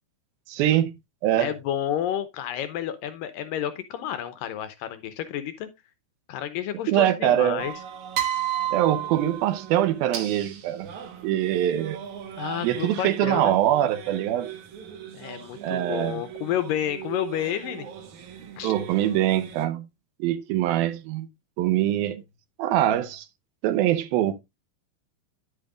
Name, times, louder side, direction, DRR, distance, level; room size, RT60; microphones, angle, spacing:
voice 1, 0.5-0.9 1.2-1.5 6.9-7.7 8.7-10.9 11.2-12.0 12.6-14.5 15.6-16.2 18.6-19.9 20.2-21.3 21.6-22.2 22.6-23.3 23.6-24.4, right 12 dB, 80° right, 2.5 m, -23 dB
voice 2, 1.4-5.7 6.3-7.7 12.4-13.6 15.1-17.9 18.6-18.7, left 11 dB, 80° left, 2.1 m, -30 dB
sound 1, 7.6-19.6, right 10 dB, 60° right, 2.4 m, -35 dB
10.5 x 8.8 x 2.4 m
omnidirectional pair, 4.4 m